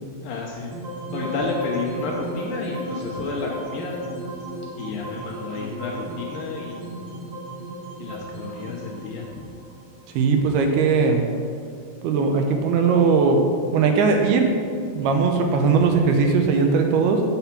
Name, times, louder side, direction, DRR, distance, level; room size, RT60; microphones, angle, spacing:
voice 1, 0.2-0.7 1.1-4.0 4.8-6.9 8.0-9.4, left 4 dB, 75° left, -2 dB, 2.2 m, -31 dB
sound 1, 0.6-10.8, right 1 dB, 60° right, 2.8 m, -34 dB
voice 2, 10.2-11.2 12.0-13.4 13.7-14.5 14.9-17.2, right 5 dB, 80° right, 4 dB, 2.6 m, -19 dB
9.3 x 4.2 x 5.8 m, 2.4 s
omnidirectional pair, 4.7 m